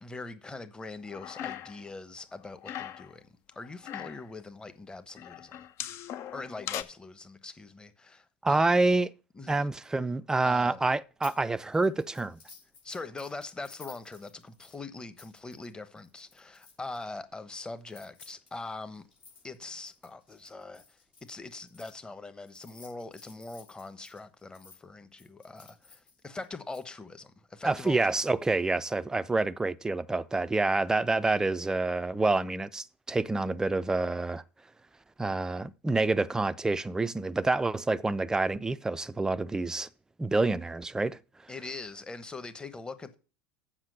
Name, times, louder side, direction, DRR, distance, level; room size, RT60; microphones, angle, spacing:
voice 1, 0.0-5.6 6.3-8.7 9.3-9.7 10.4-10.8 12.8-19.1 19.4-28.1 41.5-43.2, left 3 dB, 15° left, 1.0 m, -42 dB
sound 1, 1.0-1.9 2.2-3.1 3.6-4.3 5.2-6.8, left 11 dB, 50° left, 0.7 m, -39 dB
voice 2, 8.4-9.1 9.5-12.4 27.6-34.4 35.2-39.9 40.2-41.2, right 3 dB, 10° right, 0.4 m, -27 dB
sound 2, 11.2-11.4 11.7-17.0 17.8-21.9 22.5-24.8 25.2-26.8, left 4 dB, 80° left, 4.4 m, -54 dB
7.5 x 5.8 x 6.6 m
hypercardioid pair, 80°, 6 cm